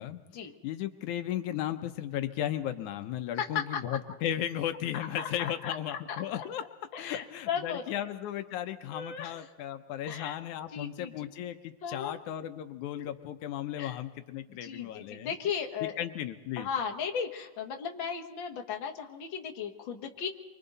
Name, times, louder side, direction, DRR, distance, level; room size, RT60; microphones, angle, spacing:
voice 1, 0.6-6.6 7.0-15.3 16.0-16.7, left 11 dB, 80° left, 9 dB, 2.2 m, -35 dB
voice 2, 3.4-3.8 5.2-5.7 6.1-6.4 6.9-8.1 8.9-9.4 10.1-10.4 10.7-11.3 11.8-12.2 13.0-13.1 13.8-14.0 14.5-16.0 16.6-20.3, left 7 dB, 45° left, 3 dB, 2.0 m, -36 dB
29.0 x 24.5 x 4.0 m, 1.1 s
omnidirectional pair, 3.4 m